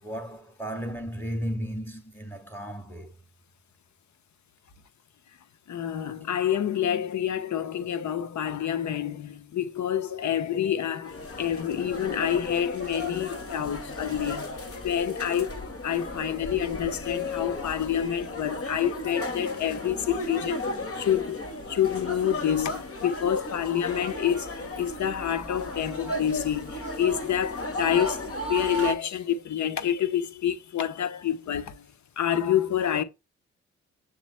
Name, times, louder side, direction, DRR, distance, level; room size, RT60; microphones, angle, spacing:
voice 1, 0.0-3.1, equal, 5° left, 3.1 m, -34 dB
voice 2, 5.7-14.6 14.8-20.7 21.0-21.4 21.7-31.8 32.2-33.0, left 9 dB, 65° left, 1.1 m, -28 dB
sound 1, 11.0-28.9, left 1 dB, 45° left, 2.3 m, -35 dB
7.2 x 7.2 x 2.2 m
supercardioid pair, 45°, 30 cm